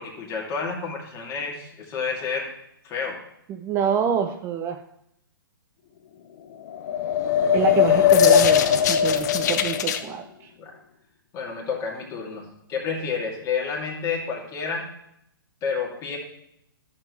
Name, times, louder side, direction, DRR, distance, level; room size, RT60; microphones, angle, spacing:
voice 1, 0.0-2.5 2.8-3.2 10.6-10.8 11.3-14.9 15.6-16.2, left 5 dB, 25° left, -2 dB, 2.5 m, -30 dB
voice 2, 3.5-4.8 7.5-10.5, right 7 dB, 20° right, 6 dB, 0.5 m, -26 dB
sound 1, 6.7-10.0, left 9 dB, 50° left, 0.8 m, -19 dB
13.0 x 7.4 x 3.2 m, 0.76 s
figure-of-eight pair, 125°, 12 cm